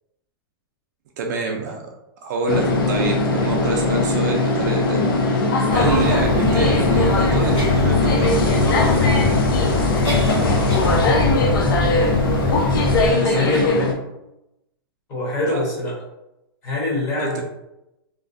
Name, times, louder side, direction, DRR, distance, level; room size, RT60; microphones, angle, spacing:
voice 1, 1.2-1.9 2.2-9.2 12.3-12.4 13.1-13.7 15.5-15.6 17.2-17.4, right 4 dB, 45° right, 1 dB, 0.3 m, -27 dB
sound 1, 2.5-13.9, left 3 dB, 60° left, 0.5 m, -20 dB
sound 2, 5.7-13.1, left 3 dB, 80° left, 1.2 m, -22 dB
voice 2, 11.1-11.5 13.3-13.9 15.1-16.0 16.6-17.4, left 2 dB, 20° left, -6 dB, 0.8 m, -24 dB
2.4 x 2.2 x 2.5 m, 0.90 s
supercardioid pair, 170°, 13 cm